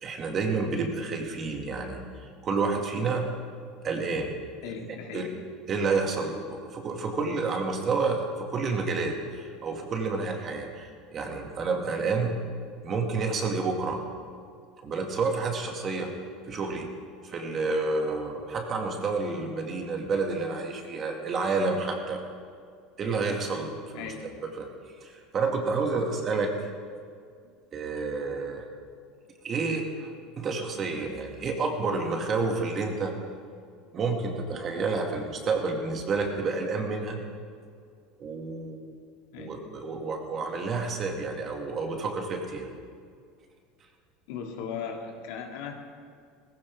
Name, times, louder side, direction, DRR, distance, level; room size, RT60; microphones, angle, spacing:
voice 1, 0.0-2.0 2.4-3.3 3.8-4.3 4.7-5.3 5.7-12.4 12.8-14.0 14.8-16.1 16.5-16.9 17.2-22.2 23.0-24.1 24.6-24.7 25.0-26.5 27.7-28.7 29.4-33.1 33.9-37.2 38.2-38.8 39.4-42.7, right 4 dB, 35° right, 2 dB, 2.2 m, -29 dB
voice 2, 4.6-5.3 23.9-24.3 27.4-27.5 39.3-39.6 44.3-45.7, left 6 dB, 75° left, 2 dB, 2.2 m, -37 dB
18.0 x 16.0 x 3.6 m, 2.2 s
supercardioid pair, 125°, 0 cm